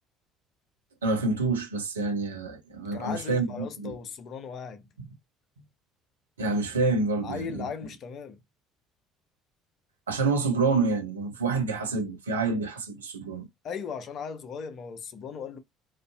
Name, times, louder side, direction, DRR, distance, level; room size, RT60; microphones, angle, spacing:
voice 1, 1.0-4.0 6.4-7.7 10.1-13.5, right 3 dB, 80° right, 0.4 m, -27 dB
voice 2, 2.9-4.9 7.2-8.4 13.6-15.6, left 6 dB, 45° left, 0.6 m, -37 dB
2.5 x 2.3 x 2.2 m
figure-of-eight pair, 55°, 0 cm